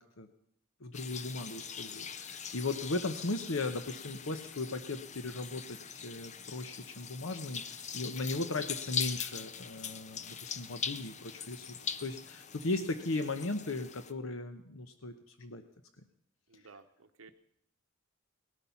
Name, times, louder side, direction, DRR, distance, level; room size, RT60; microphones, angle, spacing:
voice 1, 0.8-15.6, left 2 dB, 75° left, 8 dB, 1.0 m, -37 dB
sound 1, 0.9-14.1, left 7 dB, 35° left, 0.7 m, -42 dB
voice 2, 16.5-17.3, right 4 dB, 85° right, 6 dB, 0.9 m, -55 dB
19.0 x 12.5 x 5.8 m, 0.71 s
head